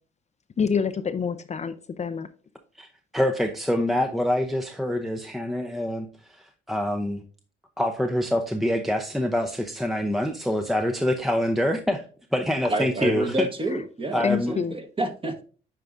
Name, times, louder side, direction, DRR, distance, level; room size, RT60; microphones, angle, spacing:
voice 1, 0.6-2.3 13.7-13.8 14.2-14.7, left 6 dB, 35° left, 9 dB, 0.5 m, -27 dB
voice 2, 3.1-7.2 7.8-12.1 12.3-13.5 14.1-14.5, left 1 dB, ahead, 5 dB, 0.7 m, -25 dB
voice 3, 12.7-15.4, right 2 dB, 25° right, 6 dB, 1.3 m, -29 dB
8.9 x 4.7 x 2.5 m, 0.38 s
cardioid pair, 90°, 20 cm